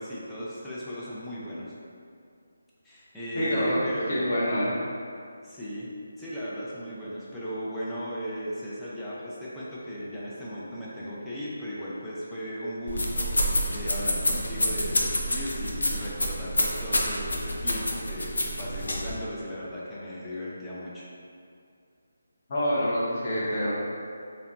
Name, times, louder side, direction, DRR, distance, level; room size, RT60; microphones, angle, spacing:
voice 1, 0.0-1.7 2.8-4.4 5.4-5.9 6.2-13.3 13.7-21.1, equal, 5° left, -10 dB, 0.4 m, -36 dB
voice 2, 3.3-3.8 4.1-4.7 22.5-23.7, equal, 40° left, -9 dB, 0.8 m, -26 dB
sound 1, 12.9-19.1, left 1 dB, 85° left, 0.4 m, -28 dB
2.7 x 2.1 x 2.4 m, 2.4 s
figure-of-eight pair, 160°, 0 cm